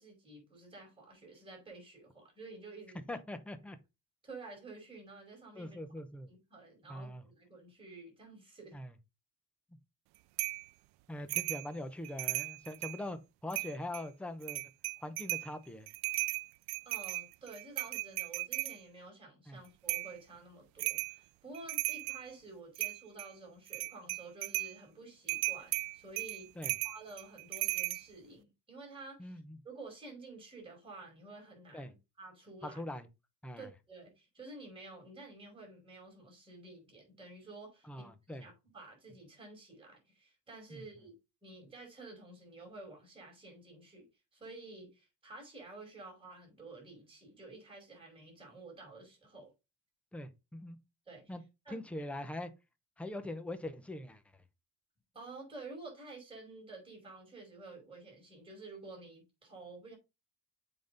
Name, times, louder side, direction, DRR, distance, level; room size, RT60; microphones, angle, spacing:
voice 1, 0.0-3.0 4.2-5.8 6.3-8.8 16.8-26.5 26.8-29.4 29.6-32.8 33.6-38.1 38.4-41.1 41.4-44.1 44.3-49.5 51.1-51.3 51.6-51.8 55.1-60.0, right 3 dB, 15° right, 5.0 m, -51 dB
voice 2, 3.1-3.8 5.5-6.3 6.9-7.2 8.7-8.9 11.1-14.6 15.0-15.9 19.5-19.6 26.6-26.7 29.2-29.6 31.7-31.9 32.6-33.1 33.4-33.7 37.8-38.5 40.7-40.8 50.1-50.8 51.3-51.4 51.7-52.5 53.0-54.4, left 1 dB, 5° left, 0.6 m, -42 dB
sound 1, 10.4-10.7 11.3-11.7 12.0-13.0 13.5-14.0 14.4-15.5 15.9-18.8 19.9-20.2 20.8-21.2 21.5-22.3 22.8-23.3 23.7-24.7 25.3-28.0, right 21 dB, 75° right, 0.5 m, -36 dB
7.5 x 5.3 x 3.9 m
cardioid pair, 160°, 39 cm